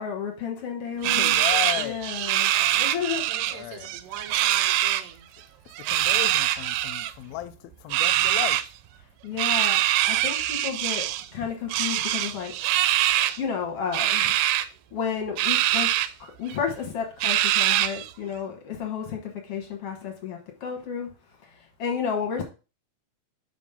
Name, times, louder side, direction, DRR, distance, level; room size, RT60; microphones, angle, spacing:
voice 1, 0.0-1.4 1.8-3.5 9.2-12.5 13.4-14.3 14.9-15.9 16.2-21.1 21.8-22.4, left 7 dB, 60° left, 1.6 m, -32 dB
voice 2, 1.0-2.0 3.5-3.9 5.9-8.6, left 12 dB, 85° left, 2.5 m, -34 dB
sound 1, 1.0-3.5 3.8-5.0 5.8-7.1 7.9-8.6 9.4-11.3 11.7-13.4 13.9-14.6 15.4-16.1 16.5-16.6 17.2-18.1, right 13 dB, 90° right, 2.5 m, -23 dB
voice 3, 2.2-3.0 3.3-5.3, right 10 dB, 75° right, 1.6 m, -41 dB
5.5 x 5.3 x 5.6 m
omnidirectional pair, 4.3 m